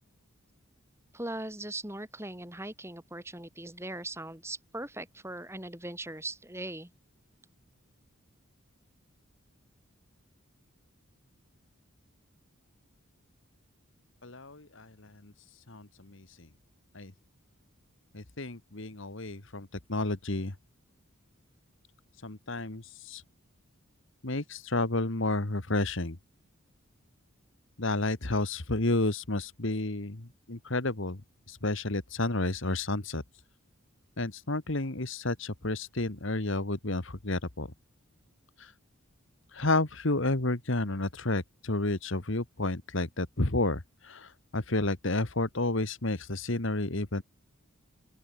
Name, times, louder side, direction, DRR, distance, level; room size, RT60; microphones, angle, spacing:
voice 1, 1.1-6.9, right 1 dB, 10° right, 5.4 m, -40 dB
voice 2, 14.2-15.3 15.7-16.5 16.9-17.1 18.1-20.5 22.2-23.2 24.2-26.2 27.8-31.2 31.5-33.2 34.2-37.7 38.6-38.7 39.5-47.2, left 2 dB, 60° left, 1.8 m, -31 dB
open air
head